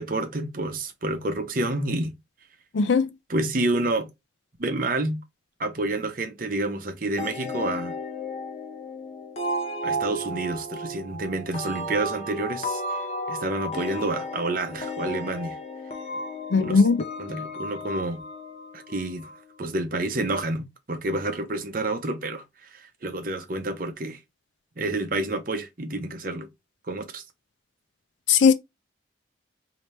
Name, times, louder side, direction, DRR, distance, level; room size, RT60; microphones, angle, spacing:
voice 1, 0.0-2.1 3.3-4.1 4.6-5.2 5.6-7.9 9.8-12.8 13.3-15.6 16.6-16.8 17.2-18.2 18.7-19.3 19.6-24.2 24.8-26.5 26.9-27.2, right 2 dB, 45° right, 0.8 m, -29 dB
voice 2, 2.7-3.1 16.5-17.0 28.3-28.5, left 5 dB, 75° left, 0.5 m, -18 dB
sound 1, 7.2-19.6, equal, 35° left, 0.8 m, -34 dB
3.3 x 2.8 x 4.2 m
head